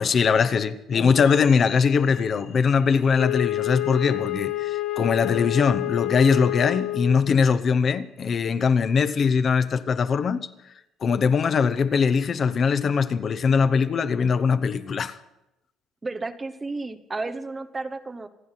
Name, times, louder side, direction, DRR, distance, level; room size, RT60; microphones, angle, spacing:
voice 1, 0.0-10.5 11.0-15.2, left 6 dB, 30° left, 0.8 m, -21 dB
sound 1, 0.9-8.5, left 4 dB, 55° left, 7.3 m, -46 dB
Wind instrument woodwind instrument, 3.2-7.4, left 17 dB, 75° left, 0.6 m, -28 dB
voice 2, 16.0-18.3, right 3 dB, 15° right, 0.9 m, -32 dB
27.0 x 9.3 x 5.7 m
cardioid pair, 180°, 0 cm